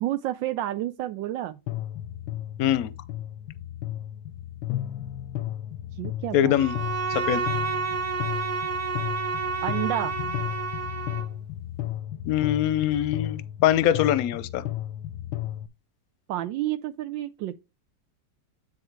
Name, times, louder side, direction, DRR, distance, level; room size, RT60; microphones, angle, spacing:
voice 1, 0.0-1.6 5.9-6.5 9.6-10.1 16.3-17.5, right 13 dB, 85° right, 1.3 m, -30 dB
sound 1, 1.7-15.7, left 13 dB, 85° left, 1.3 m, -34 dB
voice 2, 2.6-2.9 6.3-6.7 7.1-7.4 12.3-14.6, left 11 dB, 65° left, 0.9 m, -23 dB
Bowed string instrument, 6.5-11.4, right 5 dB, 55° right, 0.9 m, -30 dB
9.9 x 3.6 x 4.6 m
omnidirectional pair, 2.0 m